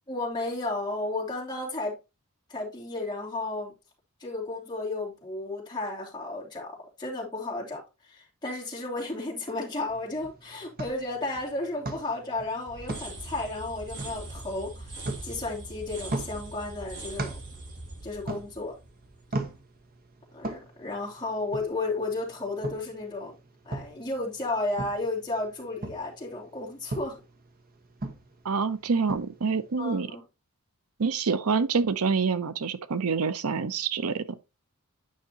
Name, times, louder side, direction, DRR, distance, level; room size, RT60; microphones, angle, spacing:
voice 1, 0.1-2.0 2.5-3.7 4.2-17.4 18.0-18.7 20.3-23.4 23.6-27.2 29.8-30.2, left 2 dB, 20° left, 2.9 m, -33 dB
sound 1, 9.9-29.8, right 2 dB, 40° right, 1.1 m, -40 dB
sound 2, 12.7-19.5, right 2 dB, 60° right, 4.1 m, -42 dB
voice 2, 28.4-30.1 31.0-34.4, right 5 dB, 75° right, 0.6 m, -27 dB
9.4 x 5.7 x 2.8 m
head